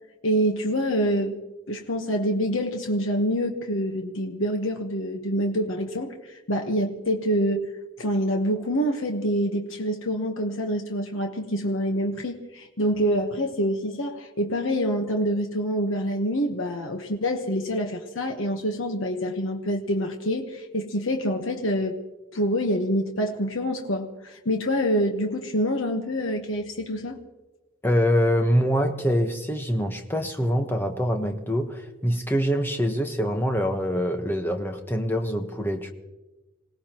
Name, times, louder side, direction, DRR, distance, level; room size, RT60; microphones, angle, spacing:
voice 1, 0.2-1.4 1.7-7.7 8.0-22.0 22.3-27.2, equal, 70° left, 3 dB, 1.2 m, -26 dB
voice 2, 27.8-35.9, equal, 10° left, 4 dB, 1.1 m, -24 dB
27.0 x 18.0 x 3.0 m, 1.1 s
head